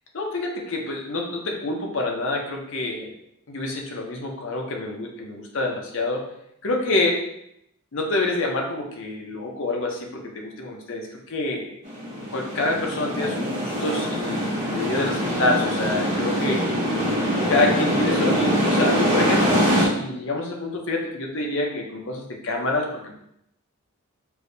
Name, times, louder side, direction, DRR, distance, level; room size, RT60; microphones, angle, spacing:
voice 1, 0.1-3.1 3.5-6.2 6.6-7.2 7.9-11.7 12.3-16.6 17.5-23.2, left 2 dB, 60° left, 0 dB, 0.6 m, -27 dB
sound 1, 11.8-19.9, equal, 30° right, 0.7 m, -23 dB
4.4 x 2.2 x 2.7 m, 0.76 s
head